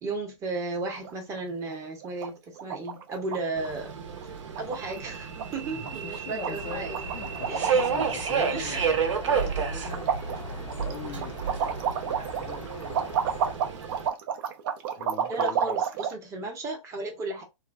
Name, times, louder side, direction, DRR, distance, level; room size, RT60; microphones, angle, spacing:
voice 1, 0.0-3.9 4.6-7.1 7.5-7.9 8.5-8.9 15.3-17.4, right 3 dB, 20° right, 0.9 m, -34 dB
sound 1, 0.9-1.4 1.7-1.8 2.0-2.3 2.6-3.4 3.6-3.9 4.2-4.3 4.5-5.1 5.4-5.5 5.8-6.2 6.4-8.4 8.7-9.5 9.8-16.1, right 8 dB, 40° right, 0.6 m, -30 dB
Subway metro underground, 3.6-14.1, right 6 dB, 65° right, 0.9 m, -31 dB
voice 2, 5.7-6.9 7.1-13.1 15.0-15.8, left 6 dB, 25° left, 0.4 m, -42 dB
sound 2, 6.5-13.6, left 3 dB, 85° left, 0.8 m, -42 dB
3.0 x 2.2 x 2.3 m
hypercardioid pair, 140°, 17 cm